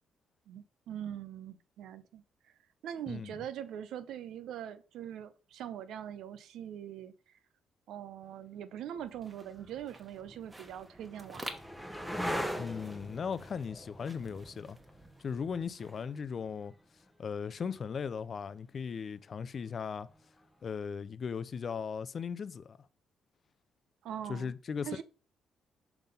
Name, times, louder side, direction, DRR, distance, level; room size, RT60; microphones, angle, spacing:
voice 1, 0.5-2.2 2.8-7.1 7.9-11.5 24.0-24.5 24.9-25.0, right 10 dB, 80° right, 0.6 m, -42 dB
sound 1, 9.0-9.1 9.9-17.6 19.9-20.4, equal, ahead, 0.9 m, -42 dB
sound 2, 9.0-16.2, right 1 dB, 20° right, 1.2 m, -51 dB
voice 2, 12.6-14.8 15.2-16.7 17.2-20.1 20.6-22.8 24.3-25.0, left 6 dB, 45° left, 0.4 m, -37 dB
5.8 x 3.6 x 5.3 m
cardioid pair, 90°, 0 cm